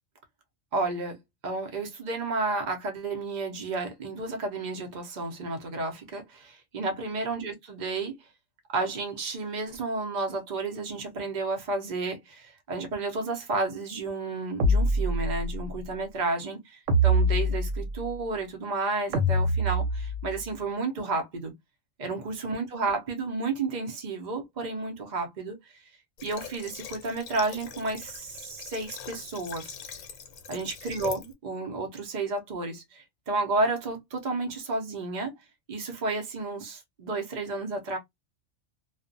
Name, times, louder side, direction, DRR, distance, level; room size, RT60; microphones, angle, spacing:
voice 1, 0.7-1.2 1.4-8.2 8.7-21.5 22.0-25.6 26.2-29.7 30.5-35.3 35.7-38.0, right 3 dB, 45° right, 0.7 m, -31 dB
sound 1, 14.6-15.7 16.9-18.1 19.1-20.4, right 1 dB, 85° right, 1.0 m, -24 dB
Water / Water tap faucet, 26.2-31.3, left 7 dB, 90° left, 1.0 m, -43 dB
2.3 x 2.1 x 2.5 m
omnidirectional pair, 1.3 m